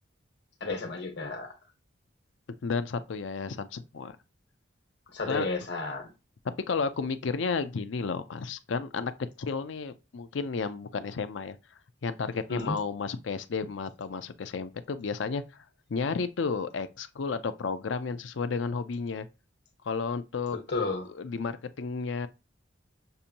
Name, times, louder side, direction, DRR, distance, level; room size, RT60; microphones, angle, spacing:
voice 1, 0.6-1.5 5.1-6.1 12.5-12.8 20.5-21.1, left 3 dB, 60° left, 1.3 m, -32 dB
voice 2, 2.6-4.2 5.3-5.5 6.7-9.1 9.4-11.6 12.0-15.4 15.9-19.3 19.8-20.6 21.2-22.3, left 4 dB, 75° left, 0.5 m, -32 dB
6.7 x 2.6 x 2.8 m
head